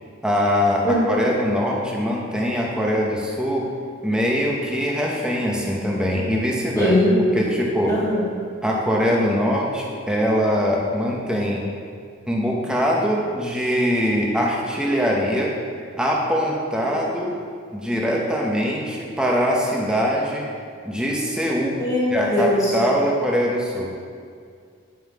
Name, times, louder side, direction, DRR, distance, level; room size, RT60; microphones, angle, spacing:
voice 1, 0.2-3.7 4.0-6.9 7.3-7.9 8.6-11.7 12.3-15.5 16.0-17.3 17.7-20.5 20.8-21.8 22.1-23.9, equal, 5° right, -2 dB, 0.8 m, -22 dB
voice 2, 6.7-7.2 7.9-8.3 21.8-22.7, left 1 dB, 15° left, -6 dB, 1.5 m, -20 dB
9.2 x 5.6 x 3.6 m, 2.2 s
head